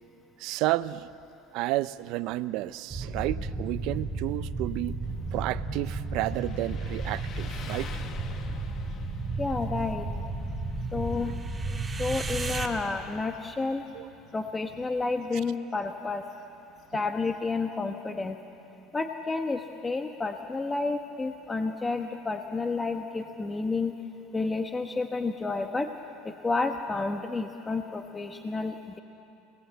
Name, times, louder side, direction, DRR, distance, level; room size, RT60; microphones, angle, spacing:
voice 1, 0.4-1.1 1.5-5.0 5.3-7.9 13.9-14.1, right 17 dB, 65° right, 15 dB, 0.7 m, -31 dB
sound 1, 2.9-12.7, right 3 dB, 15° right, 2.0 m, -33 dB
Motorcycle, 5.0-17.6, left 6 dB, 45° left, 1.6 m, -50 dB
voice 2, 9.4-10.1 10.9-11.3 12.0-13.8 14.3-16.2 16.9-18.4 18.9-23.9 24.3-25.9 26.4-29.0, left 3 dB, 15° left, 5 dB, 1.1 m, -30 dB
28.5 x 19.5 x 8.1 m, 2.7 s
supercardioid pair, 115°, 0 cm